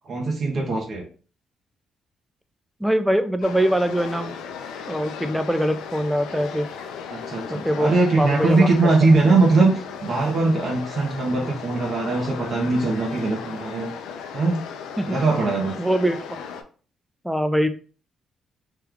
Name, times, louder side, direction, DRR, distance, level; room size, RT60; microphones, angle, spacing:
voice 1, 0.1-1.1 7.1-13.9 14.3-14.6 15.1-15.7, right 3 dB, 50° right, 0 dB, 0.8 m, -21 dB
voice 2, 2.8-4.4 4.9-6.7 7.5-8.7 15.0-15.2 15.8-16.2 17.2-17.7, equal, 5° right, 9 dB, 0.4 m, -23 dB
sound 1, 3.4-16.6, left 6 dB, 90° left, 0.4 m, -36 dB
3.0 x 2.3 x 3.5 m, 0.39 s
cardioid pair, 90°, 0 cm